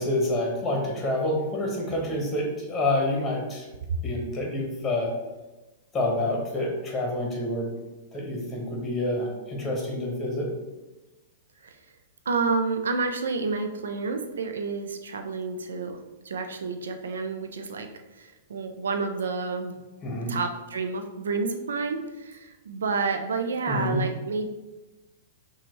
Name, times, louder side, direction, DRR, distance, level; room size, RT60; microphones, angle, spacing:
voice 1, 0.0-3.7 4.0-5.1 5.9-7.7 8.1-10.5 20.0-20.3 23.7-24.0, left 1 dB, 15° left, 0 dB, 1.2 m, -28 dB
voice 2, 12.3-17.9 18.1-19.7 20.3-24.5, right 4 dB, 70° right, 6 dB, 0.5 m, -29 dB
5.7 x 2.3 x 3.1 m, 1.1 s
figure-of-eight pair, 105°, 0 cm